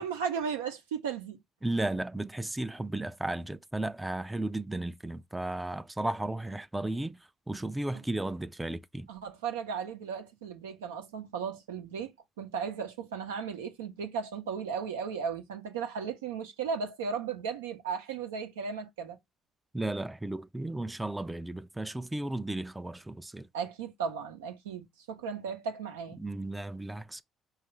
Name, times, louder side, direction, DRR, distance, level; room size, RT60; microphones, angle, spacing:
voice 1, 0.0-1.4 9.1-19.2 23.5-26.2, right 6 dB, 90° right, 0.7 m, -36 dB
voice 2, 1.6-7.2 7.5-9.1 19.7-23.5 26.2-27.2, right 2 dB, 10° right, 0.4 m, -34 dB
4.8 x 2.4 x 3.0 m
hypercardioid pair, 60°, 0 cm